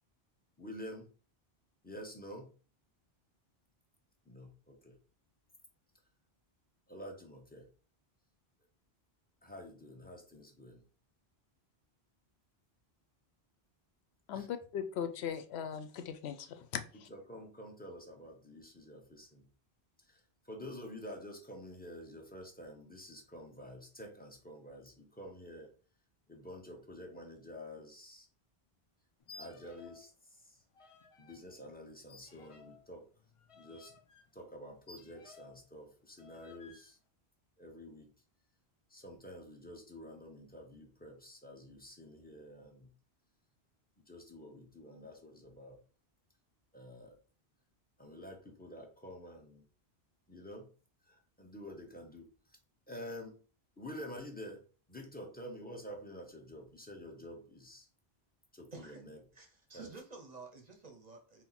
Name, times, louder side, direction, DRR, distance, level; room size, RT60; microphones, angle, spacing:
voice 1, 0.6-1.1 1.8-2.5 4.2-5.0 6.9-7.7 9.4-10.9 14.3-14.5 17.1-19.4 20.0-25.7 26.3-28.3 29.3-30.6 31.2-33.0 33.5-33.9 34.3-37.0 37.6-38.1 38.9-42.9 44.1-45.8 46.7-47.2 48.0-49.6 50.3-50.7 51.0-52.6 52.9-53.4 53.8-57.9 58.5-59.2 59.7-59.9, equal, 10° left, 1 dB, 0.7 m, -49 dB
voice 2, 14.3-16.8, left 8 dB, 85° left, 10 dB, 0.8 m, -39 dB
sound 1, 29.2-30.1 30.4-31.4 32.1-35.7 36.2-36.9, left 3 dB, 50° left, 0.4 m, -57 dB
voice 3, 58.7-59.0 59.3-61.4, right 3 dB, 45° right, 4 dB, 0.7 m, -51 dB
4.2 x 2.1 x 4.0 m, 0.38 s
omnidirectional pair, 1.1 m